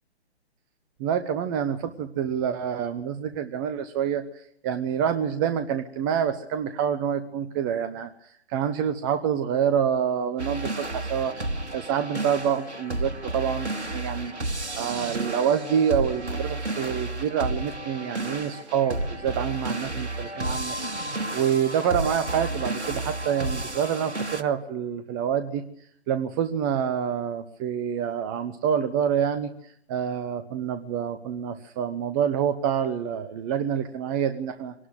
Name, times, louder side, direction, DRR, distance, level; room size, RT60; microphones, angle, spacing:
voice 1, 1.0-11.3 11.7-14.3 14.7-25.6 26.1-34.7, right 8 dB, 15° right, 10 dB, 1.0 m, -27 dB
sound 1, 10.4-24.4, right 2 dB, 85° right, 2.3 m, -32 dB
25.0 x 19.0 x 8.0 m, 0.72 s
figure-of-eight pair, 140°, 33 cm